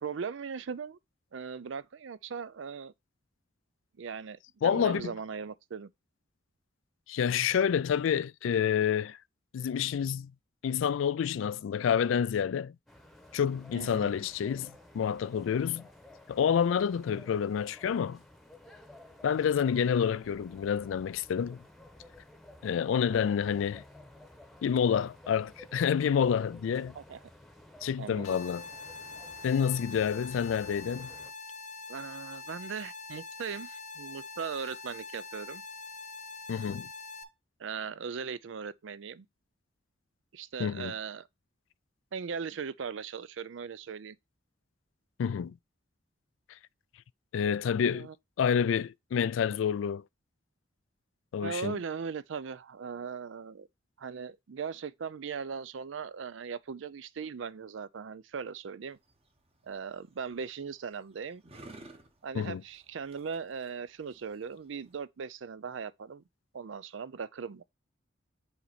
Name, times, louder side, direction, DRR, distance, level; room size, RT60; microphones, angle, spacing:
voice 1, 0.0-1.0 1.3-2.9 4.0-5.9 13.7-14.3 23.1-23.2 26.9-27.2 28.0-28.4 31.9-35.6 37.6-39.3 40.3-41.3 42.1-44.2 47.9-48.1 51.4-53.7 54.0-59.0 59.6-61.4 62.2-66.2 66.5-67.6, right 6 dB, 70° right, 0.4 m, -39 dB
voice 2, 4.6-5.1 7.1-9.2 9.5-10.3 10.6-12.7 13.3-15.8 16.3-18.2 19.2-21.6 22.6-23.8 24.6-26.9 27.8-28.6 29.4-31.1 36.5-36.9 40.6-40.9 45.2-45.6 47.3-48.1 48.4-50.0 51.3-51.8 62.3-62.6, left 7 dB, 80° left, 0.3 m, -28 dB
sound 1, 12.9-31.3, left 1 dB, ahead, 1.0 m, -53 dB
sound 2, 28.2-37.2, left 4 dB, 40° left, 1.0 m, -44 dB
sound 3, 58.9-65.0, right 2 dB, 30° right, 1.0 m, -55 dB
5.7 x 4.4 x 4.0 m
head